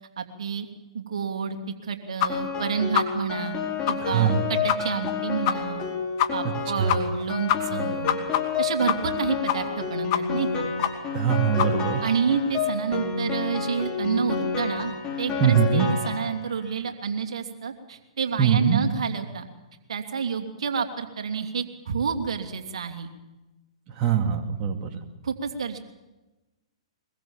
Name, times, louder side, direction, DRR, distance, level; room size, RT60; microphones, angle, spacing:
voice 1, 0.2-0.7 0.9-1.6 1.8-3.6 3.9-5.8 6.3-8.2 8.6-10.7 12.0-14.9 15.2-19.5 19.9-23.1 25.2-25.8, right 6 dB, 70° right, 5 dB, 2.9 m, -29 dB
sound 1, 2.2-2.3 2.6-2.7 2.9-3.0 3.4-3.5 3.9-4.0 4.2-4.3 4.7-4.8 5.1-5.2 5.4-5.5 5.8-5.9 6.2-6.3 6.6-6.7 6.9-7.2 7.5-9.2 9.5-9.8 10.1-10.5 10.8-10.9 11.2-11.3 11.6-11.7, left 12 dB, 45° left, 2.5 m, -24 dB
Piano, 2.3-16.7, left 5 dB, 20° left, 5.5 m, -30 dB
voice 2, 4.0-4.4 6.8-6.9 7.7-7.9 11.1-12.0 15.4-15.9 18.4-18.8 24.0-24.9, right 8 dB, 30° right, 3 dB, 2.6 m, -22 dB
23.5 x 22.0 x 7.3 m, 1.1 s
hypercardioid pair, 130°, 3 cm